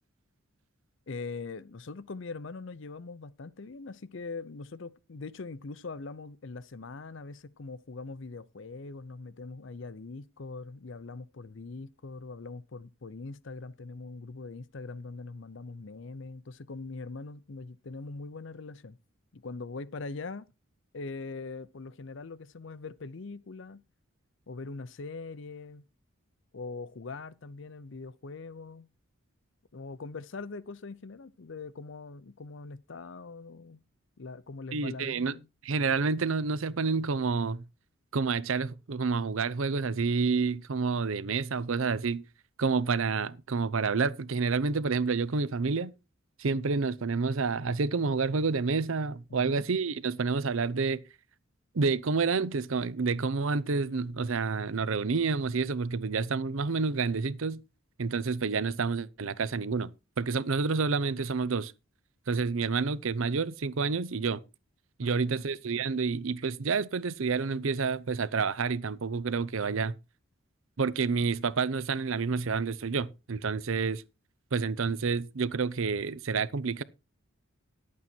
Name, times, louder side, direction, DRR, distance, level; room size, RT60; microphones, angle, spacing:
voice 1, 1.1-19.0 19.3-20.5 20.9-23.8 24.5-25.8 26.5-28.9 29.7-33.8 34.2-35.5 49.3-49.6 65.0-65.5, left 3 dB, 60° left, 0.6 m, -42 dB
voice 2, 34.7-35.3 35.6-37.6 38.1-42.2 42.6-45.9 46.4-51.0 51.7-57.6 58.0-61.7 62.3-64.4 65.0-70.0 70.8-74.0 74.5-76.8, right 4 dB, 70° right, 0.6 m, -29 dB
11.0 x 8.5 x 4.4 m
head